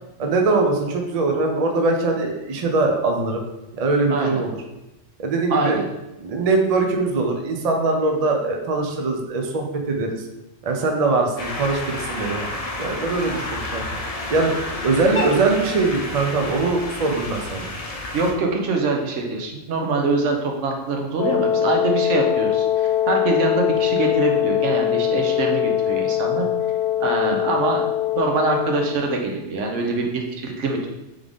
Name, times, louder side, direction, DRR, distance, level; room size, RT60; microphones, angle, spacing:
voice 1, 0.2-3.4 3.7-4.6 5.2-5.8 6.2-10.2 10.6-12.5 12.8-13.8 14.3-17.7, right 3 dB, 50° right, 3 dB, 0.5 m, -22 dB
voice 2, 4.1-4.4 5.5-5.8 18.1-26.4 27.0-27.8 28.1-30.9, right 3 dB, 75° right, 2 dB, 1.0 m, -24 dB
sound 1, 11.4-18.3, left 2 dB, 40° left, 0.6 m, -30 dB
Wind instrument woodwind instrument, 21.2-29.0, left 11 dB, 80° left, 1.0 m, -22 dB
3.6 x 3.5 x 3.5 m, 0.96 s
omnidirectional pair, 1.3 m